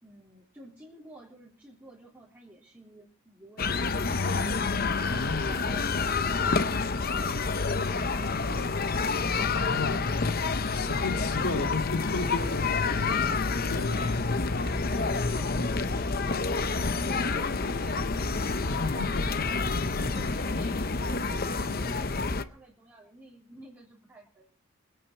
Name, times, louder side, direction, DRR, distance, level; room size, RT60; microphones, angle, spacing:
voice 1, 0.0-4.1 5.5-5.9 11.4-11.5 13.7-14.2 14.5-24.5, right 1 dB, 10° right, -7 dB, 3.3 m, -50 dB
sound 1, 3.6-22.4, left 4 dB, 45° left, 0.8 m, -28 dB
voice 2, 4.9-5.5 9.5-10.0 10.7-14.3 18.7-20.3 21.0-21.1, left 3 dB, 85° left, 4 dB, 2.7 m, -35 dB
24.0 x 9.1 x 4.5 m, 0.43 s
head